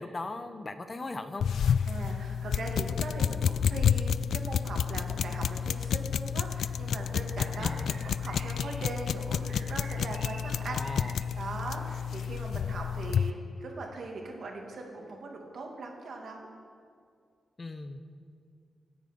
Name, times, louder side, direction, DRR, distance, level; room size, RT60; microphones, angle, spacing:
voice 1, 0.0-1.5 7.6-8.0 10.7-11.1 17.6-18.0, left 2 dB, 25° left, 9 dB, 0.9 m, -38 dB
sound 1, 1.4-13.3, left 7 dB, 75° left, 0.3 m, -30 dB
voice 2, 1.8-10.9 11.4-16.5, right 3 dB, 55° right, 0 dB, 2.6 m, -40 dB
sound 2, 5.5-11.3, right 4 dB, 75° right, 1.5 m, -51 dB
25.0 x 9.3 x 5.4 m, 2.2 s
wide cardioid pair, 160°, 0 cm